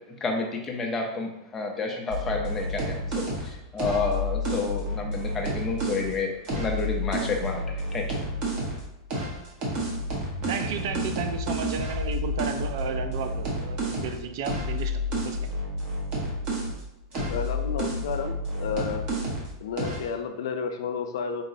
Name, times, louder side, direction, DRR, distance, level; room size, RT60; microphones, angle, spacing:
voice 1, 0.2-8.2, left 4 dB, 10° left, 0.5 m, -30 dB
sound 1, 2.1-6.1 6.4-8.8 9.1-16.8 17.1-19.5 19.8-20.1, equal, 30° right, 0.9 m, -30 dB
voice 2, 10.5-15.5, right 6 dB, 55° right, 0.4 m, -33 dB
voice 3, 17.3-19.1 19.6-21.4, left 6 dB, 75° left, 0.5 m, -31 dB
3.9 x 2.9 x 2.6 m
supercardioid pair, 170°, 2 cm